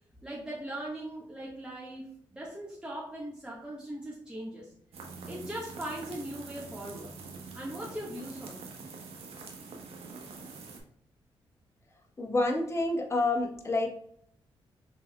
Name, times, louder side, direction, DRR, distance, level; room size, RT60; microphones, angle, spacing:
voice 1, 0.2-2.1 2.3-4.7 5.3-7.1 7.5-8.7, right 1 dB, 10° right, -5 dB, 1.4 m, -40 dB
sound 1, 4.9-10.8, right 4 dB, 80° right, 1.0 m, -45 dB
voice 2, 12.2-13.9, left 2 dB, 25° left, 1 dB, 1.0 m, -28 dB
5.9 x 3.4 x 2.2 m, 0.64 s
cardioid pair, 60°, 10 cm